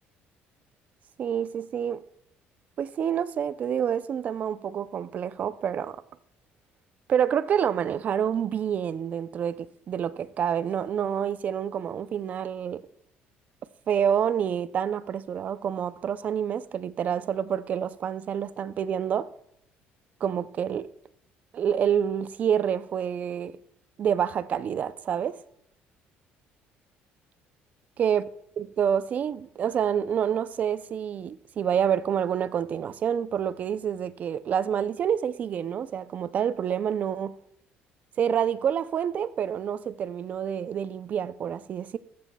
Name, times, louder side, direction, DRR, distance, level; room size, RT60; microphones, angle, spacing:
voice 1, 1.2-2.0 2.8-6.0 7.1-12.8 13.9-19.3 20.2-20.9 21.5-23.5 24.0-25.4 28.0-28.2 28.6-37.4 38.2-42.0, right 8 dB, 40° right, 0.4 m, -27 dB
14.5 x 9.3 x 2.2 m
cardioid pair, 145°, 4 cm